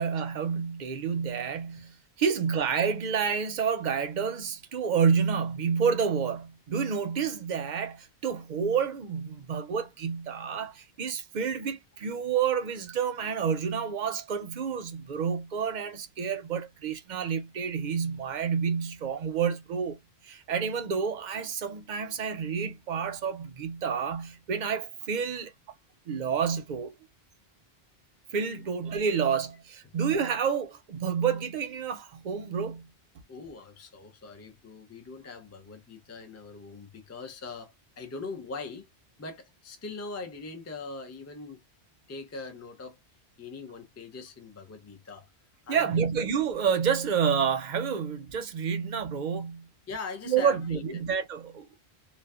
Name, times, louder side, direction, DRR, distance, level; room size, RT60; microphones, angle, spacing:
voice 1, 0.0-20.0 20.2-25.5 26.1-26.9 28.3-32.9 45.7-49.6 50.3-51.8, right 6 dB, 55° right, 0.5 m, -29 dB
voice 2, 33.3-38.9 39.2-41.6 42.1-43.0 43.4-45.3 45.7-46.1 49.9-51.0, left 4 dB, 20° left, 0.4 m, -41 dB
2.7 x 2.1 x 2.2 m
omnidirectional pair, 1.1 m